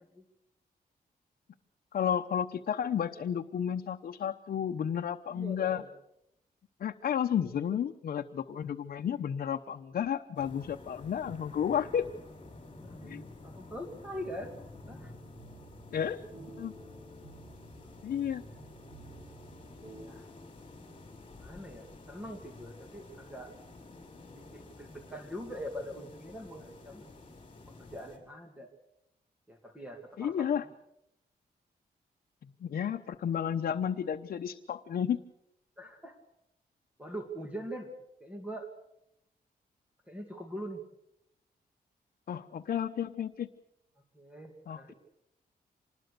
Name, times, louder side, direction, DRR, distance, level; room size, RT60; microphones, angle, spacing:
voice 1, 1.9-5.8 6.8-12.0 13.0-13.2 15.9-16.2 16.6-16.7 18.0-18.4 30.2-30.6 32.4-35.2 42.3-43.5 44.7-44.9, left 8 dB, 65° left, 4 dB, 0.9 m, -32 dB
voice 2, 5.3-5.9 12.8-14.5 14.9-15.1 20.0-20.3 21.3-23.5 24.3-27.1 27.8-28.7 29.5-30.5 35.8-36.2 37.0-37.9 38.2-38.7 40.1-40.8 44.1-44.9, equal, 10° right, 3 dB, 2.4 m, -43 dB
sound 1, 10.3-28.2, left 2 dB, 35° left, 5.1 m, -51 dB
sound 2, 15.0-20.1, right 3 dB, 45° right, 5.3 m, -52 dB
26.0 x 20.5 x 6.8 m, 0.81 s
wide cardioid pair, 170°, 16 cm